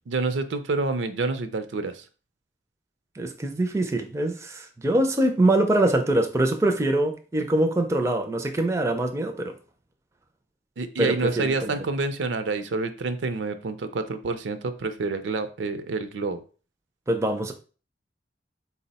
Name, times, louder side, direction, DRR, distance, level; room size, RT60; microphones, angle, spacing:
voice 1, 0.1-2.0 10.8-16.4, right 3 dB, 80° right, 0.5 m, -28 dB
voice 2, 3.2-9.5 11.0-11.7 17.1-17.5, right 1 dB, 15° right, 0.3 m, -24 dB
4.0 x 2.0 x 4.0 m
head